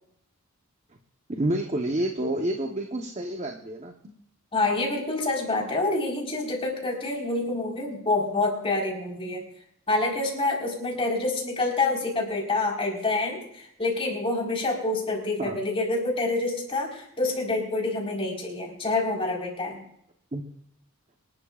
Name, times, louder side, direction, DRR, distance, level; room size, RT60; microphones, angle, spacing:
voice 1, 1.3-3.9 15.4-15.6 20.3-20.4, right 1 dB, 30° right, 3 dB, 0.9 m, -28 dB
voice 2, 4.5-9.4 9.9-19.8, left 2 dB, 25° left, -1 dB, 4.1 m, -27 dB
26.5 x 12.0 x 2.4 m, 0.71 s
head